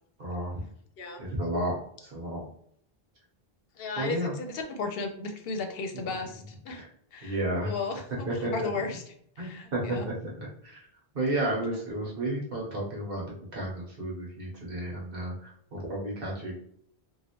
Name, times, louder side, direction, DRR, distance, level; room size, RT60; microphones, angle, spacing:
voice 1, 0.2-0.6 1.2-2.4 4.0-4.3 6.1-6.2 6.7-6.9 7.2-7.7 8.3-9.0 9.4-10.3 10.6-10.9 11.1-13.3 13.5-16.6, right 1 dB, 60° right, -3 dB, 1.2 m, -32 dB
voice 2, 3.8-6.8 7.1-9.0 9.4-10.1, left 4 dB, 70° left, 5 dB, 0.7 m, -35 dB
2.9 x 2.6 x 2.9 m, 0.66 s
omnidirectional pair, 1.0 m